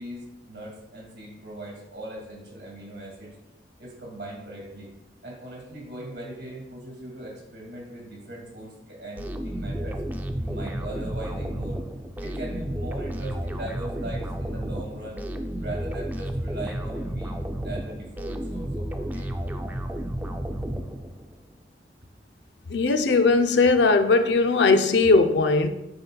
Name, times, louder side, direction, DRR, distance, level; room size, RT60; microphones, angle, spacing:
voice 1, 0.0-3.3 3.8-4.9 5.2-10.0 10.4-11.8 12.2-15.2 15.6-17.4 17.6-19.4, right 1 dB, 65° right, 2.0 m, -39 dB
sound 1, 9.2-21.4, right 1 dB, 10° right, 0.4 m, -32 dB
voice 2, 22.7-25.7, left 3 dB, 80° left, 0.5 m, -19 dB
7.9 x 5.4 x 2.3 m
head